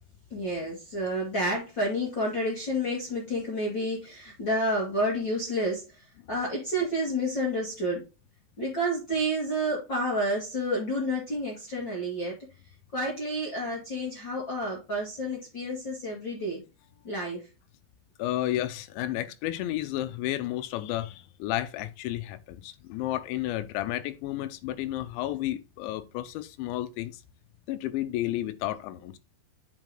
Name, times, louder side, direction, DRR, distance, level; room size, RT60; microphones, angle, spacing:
voice 1, 0.3-5.8 6.3-8.0 8.6-12.3 12.9-16.6 17.0-17.4, equal, 45° left, 1.5 m, -30 dB
voice 2, 18.2-27.2 27.7-29.2, left 14 dB, 80° left, 2.9 m, -32 dB
7.8 x 5.3 x 3.8 m
omnidirectional pair, 5.3 m